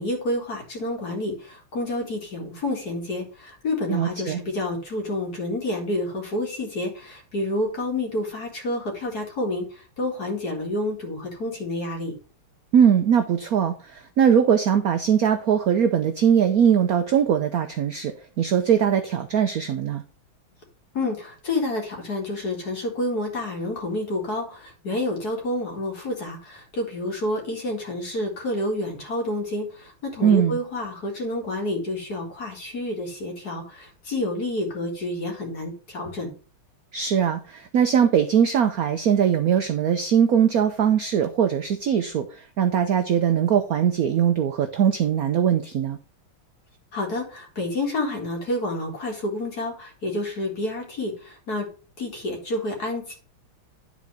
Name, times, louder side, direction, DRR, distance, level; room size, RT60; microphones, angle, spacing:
voice 1, 0.0-12.1 20.9-36.3 46.9-51.7 52.0-53.1, left 1 dB, 45° left, 1 dB, 2.4 m, -29 dB
voice 2, 3.9-4.4 12.7-20.0 30.2-30.6 36.9-46.0, right 8 dB, 75° right, 8 dB, 0.8 m, -21 dB
10.5 x 4.2 x 4.9 m, 0.38 s
omnidirectional pair, 2.4 m